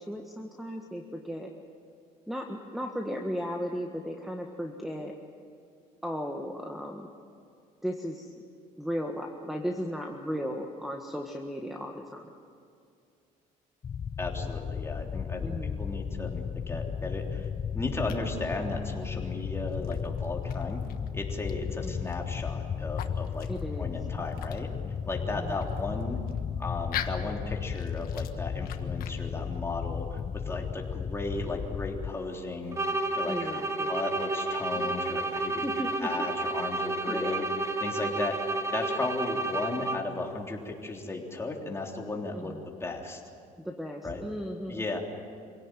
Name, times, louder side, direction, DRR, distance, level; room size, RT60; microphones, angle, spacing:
voice 1, 0.0-1.5 2.3-5.1 6.0-7.1 7.8-8.3 8.8-12.2 15.4-15.8 21.8-22.0 23.5-23.9 25.4-25.7 33.3-34.0 34.7-35.0 35.6-35.9 36.2-36.3 37.1-37.5 42.3-42.6 43.6-44.9, equal, ahead, 2 dB, 1.6 m, -36 dB
sound 1, 13.8-32.1, left 7 dB, 35° left, 0.6 m, -34 dB
voice 2, 14.2-17.5 17.7-20.8 21.1-23.5 23.8-24.7 25.1-26.2 26.6-32.8 33.1-37.4 37.8-42.5 42.8-43.2 44.0-44.2 44.7-45.0, left 2 dB, 15° left, 0 dB, 3.5 m, -35 dB
sound 2, 16.5-30.4, left 11 dB, 75° left, 1.5 m, -46 dB
sound 3, 32.7-40.2, right 2 dB, 20° right, 1.3 m, -31 dB
26.5 x 17.5 x 9.2 m, 2.4 s
cardioid pair, 120°, 15 cm